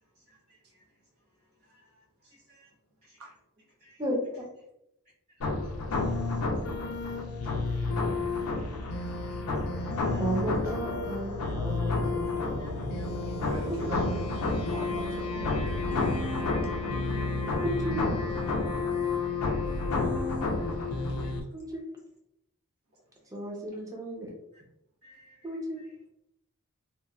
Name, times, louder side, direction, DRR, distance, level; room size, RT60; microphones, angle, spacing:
sound 1, 5.4-21.4, left 3 dB, 85° left, 0.4 m, -30 dB
voice 1, 6.8-7.1 7.4-7.8 9.6-10.2 11.8-13.1 15.7-15.8 16.6-16.7 17.3-17.5 19.0-20.3 20.6-21.4 25.0-25.9, equal, 45° right, -6 dB, 1.3 m, -59 dB
voice 2, 10.2-13.1 13.4-13.8 17.8-18.0 21.5-21.8 23.3-24.3 25.4-25.8, right 1 dB, 15° right, -2 dB, 0.6 m, -34 dB
voice 3, 13.5-15.6, right 2 dB, 80° right, 0 dB, 0.7 m, -42 dB
2.8 x 2.2 x 2.3 m, 0.80 s
head